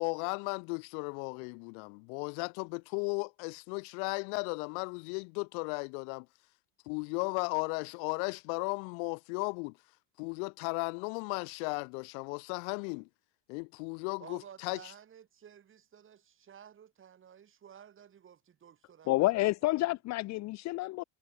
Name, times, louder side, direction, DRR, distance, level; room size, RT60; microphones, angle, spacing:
voice 1, 0.0-6.3 6.9-9.7 10.2-13.1 13.5-14.8, left 39 dB, 70° left, 1.2 m, -35 dB
voice 2, 14.2-19.3 19.6-19.9, right 8 dB, 30° right, 5.9 m, -54 dB
voice 3, 19.1-21.0, left 19 dB, 40° left, 0.7 m, -29 dB
cardioid pair, 145°, 43 cm